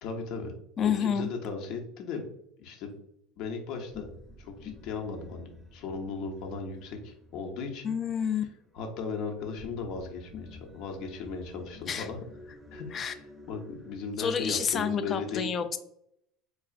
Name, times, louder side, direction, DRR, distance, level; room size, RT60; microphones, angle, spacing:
voice 1, 0.0-2.3 2.6-2.9 3.4-4.1 4.4-7.9 8.7-12.2 12.7-13.2 13.5-15.5, left 4 dB, 65° left, 3 dB, 0.7 m, -37 dB
voice 2, 0.8-1.3 7.8-8.4 11.9-12.1 12.9-13.1 14.2-15.8, left 7 dB, 35° left, 10 dB, 0.4 m, -29 dB
sound 1, 3.6-14.0, left 4 dB, 5° left, 0.8 m, -50 dB
4.7 x 2.4 x 2.4 m, 0.73 s
supercardioid pair, 105°, 0 cm